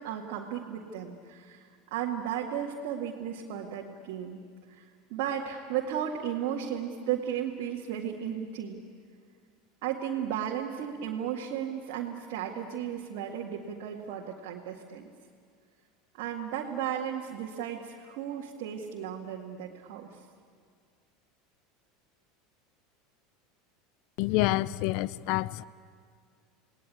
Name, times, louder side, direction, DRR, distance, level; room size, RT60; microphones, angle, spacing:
voice 1, 0.0-1.6 1.9-4.4 4.7-8.8 9.8-15.0 16.1-20.1, right 9 dB, 60° right, -2 dB, 2.1 m, -34 dB
voice 2, 24.2-25.7, left 17 dB, 55° left, 20 dB, 0.6 m, -27 dB
29.0 x 19.5 x 8.6 m, 2.1 s
figure-of-eight pair, 80°, 0 cm